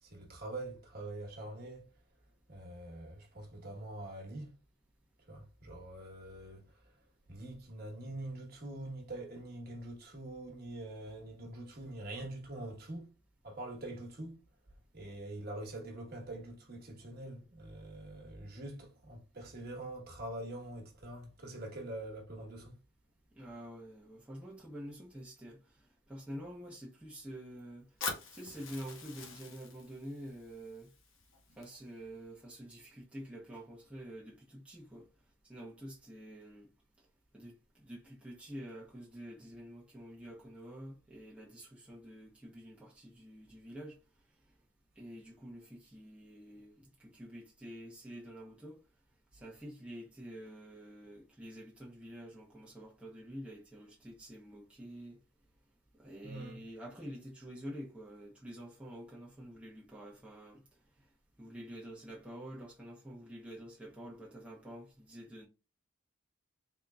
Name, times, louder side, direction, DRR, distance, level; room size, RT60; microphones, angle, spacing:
voice 1, 0.0-1.9 2.5-4.5 5.3-6.9 7.3-13.1 13.4-14.4 14.9-22.8 56.2-56.6, right 1 dB, 45° right, 1.2 m, -44 dB
voice 2, 23.4-25.6 26.1-27.9 28.3-30.9 31.6-35.1 35.5-36.7 37.3-37.5 37.8-44.0 45.0-48.8 49.3-55.2 56.0-60.6 61.4-65.5, equal, 5° right, 0.8 m, -48 dB
Fire, 28.0-32.0, left 4 dB, 70° left, 1.0 m, -44 dB
4.0 x 3.6 x 2.3 m
head